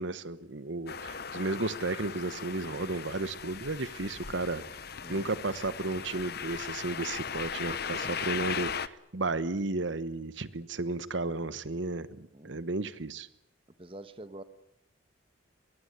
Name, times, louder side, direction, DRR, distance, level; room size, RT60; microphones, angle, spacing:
voice 1, 0.0-4.6 5.1-13.3, right 2 dB, 70° right, 15 dB, 1.1 m, -33 dB
sound 1, 0.9-8.9, left 7 dB, 50° left, 0.9 m, -38 dB
voice 2, 5.0-5.3 12.3-12.6 13.8-14.4, right 1 dB, 30° right, 12 dB, 1.3 m, -46 dB
23.0 x 20.5 x 9.9 m, 0.76 s
head